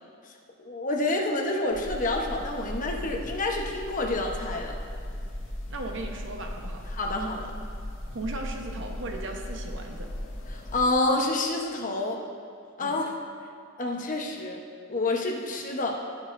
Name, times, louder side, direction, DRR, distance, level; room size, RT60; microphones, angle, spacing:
voice 1, 0.6-4.7 6.9-7.5 10.5-12.2 12.8-13.1 13.8-14.6 14.9-15.9, left 2 dB, 40° left, 1 dB, 1.1 m, -28 dB
sound 1, 1.7-10.9, left 1 dB, 70° left, 1.4 m, -37 dB
voice 2, 5.7-6.9 8.1-10.1 12.8-13.0, right 2 dB, 65° right, 3 dB, 1.0 m, -37 dB
18.0 x 6.5 x 2.6 m, 2.5 s
head